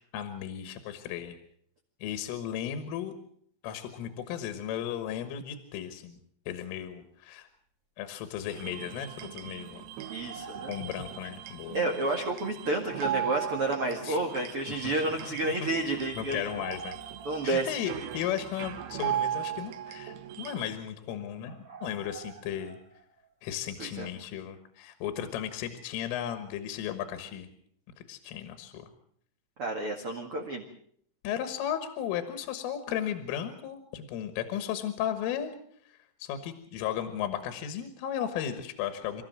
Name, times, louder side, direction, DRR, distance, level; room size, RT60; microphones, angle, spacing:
voice 1, 0.1-1.4 2.0-3.1 3.6-6.2 6.5-7.5 8.0-9.8 10.7-11.8 14.0-14.2 14.7-15.7 16.2-17.0 17.4-22.8 23.4-27.5 28.0-28.9 31.2-35.5 35.9-39.2, left 10 dB, 80° left, 9 dB, 4.0 m, -35 dB
sound 1, 8.5-20.7, right 11 dB, 75° right, 2.4 m, -38 dB
sound 2, 10.0-12.0 12.3-12.4 16.3-18.2 18.6-18.7 19.7-19.8 20.2-20.3 20.8-21.0 21.4-23.3, right 6 dB, 25° right, 1.7 m, -47 dB
voice 2, 10.1-10.7 11.7-16.4 17.2-17.9 23.8-24.1 29.6-30.7, right 2 dB, 55° right, 2 dB, 1.6 m, -30 dB
27.5 x 14.0 x 7.6 m, 0.66 s
omnidirectional pair, 5.9 m